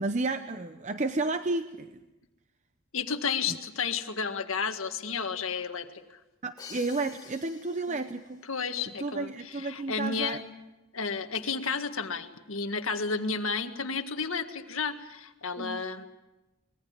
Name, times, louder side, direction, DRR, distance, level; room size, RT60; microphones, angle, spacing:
voice 1, 0.0-2.0 6.4-8.4 9.0-10.4 15.6-15.8, right 3 dB, 35° right, 9 dB, 0.7 m, -32 dB
voice 2, 2.9-6.2 7.9-8.0 8.4-10.4 10.9-16.0, left 5 dB, 75° left, 7 dB, 1.8 m, -32 dB
Crash cymbal, 6.6-8.4, left 6 dB, 20° left, 2.2 m, -48 dB
25.0 x 21.0 x 7.3 m, 1.0 s
head